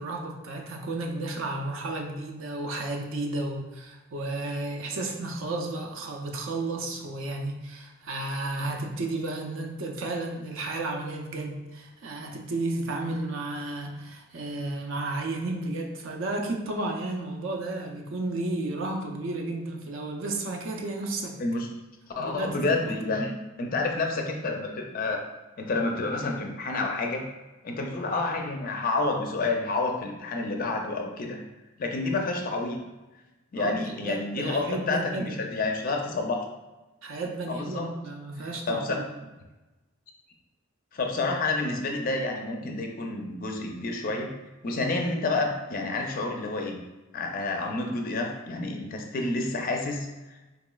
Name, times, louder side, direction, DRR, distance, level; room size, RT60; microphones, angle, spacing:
voice 1, 0.0-21.3 22.2-22.6 23.1-23.2 33.6-35.5 37.0-39.0, right 2 dB, 60° right, 2 dB, 0.5 m, -33 dB
voice 2, 22.2-25.2 25.6-27.3 27.6-31.4 31.8-32.8 33.5-36.5 37.5-37.9 38.4-39.0 40.9-44.3 44.6-46.8 47.1-50.4, left 3 dB, 40° left, 2 dB, 0.4 m, -29 dB
3.9 x 2.9 x 2.3 m, 1.1 s
head